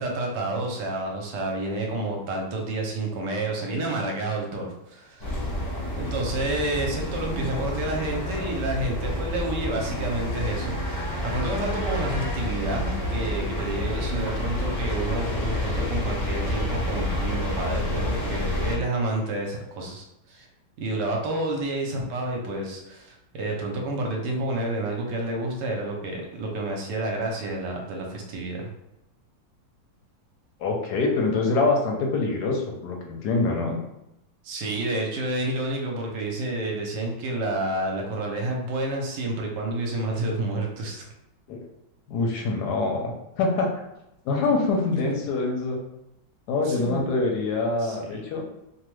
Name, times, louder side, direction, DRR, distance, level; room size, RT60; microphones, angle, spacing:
voice 1, 0.0-5.3 5.9-20.5 20.8-28.7 34.4-41.0 44.9-45.1 46.6-47.1 47.8-48.2, right 2 dB, 70° right, 1 dB, 1.2 m, -29 dB
sound 1, 5.2-18.8, left 1 dB, 55° left, 0.6 m, -29 dB
voice 2, 30.6-33.8 41.5-41.6 42.1-43.7 44.2-45.8 46.5-48.4, left 3 dB, 70° left, 0 dB, 1.0 m, -25 dB
3.1 x 2.2 x 3.1 m, 0.86 s
omnidirectional pair, 2.1 m